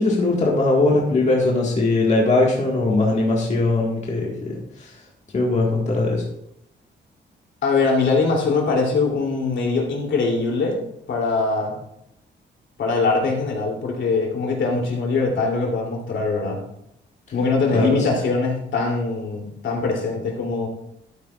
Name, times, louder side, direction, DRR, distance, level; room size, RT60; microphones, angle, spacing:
voice 1, 0.0-5.0 5.3-6.2 17.7-18.0, left 2 dB, 35° left, -2 dB, 1.7 m, -20 dB
voice 2, 7.6-11.8 12.8-16.6 17.3-20.7, left 4 dB, 75° left, -1 dB, 3.0 m, -22 dB
12.5 x 9.3 x 2.4 m, 0.80 s
wide cardioid pair, 140°, 19 cm